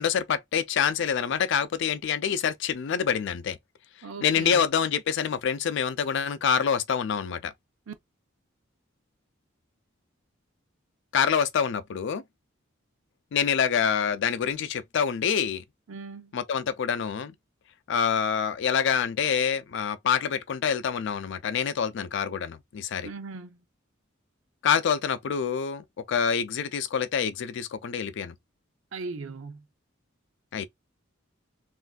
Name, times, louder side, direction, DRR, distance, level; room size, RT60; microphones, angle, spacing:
voice 1, 0.0-3.6 4.2-7.5 11.1-12.2 13.3-15.6 16.3-17.3 17.9-23.1 24.6-28.3 30.5-30.7, left 7 dB, 65° left, 0.4 m, -26 dB
voice 2, 4.0-4.6 7.9-8.0 15.9-16.3 23.0-23.6 28.9-29.6, right 4 dB, 75° right, 0.6 m, -38 dB
3.2 x 2.5 x 2.2 m
head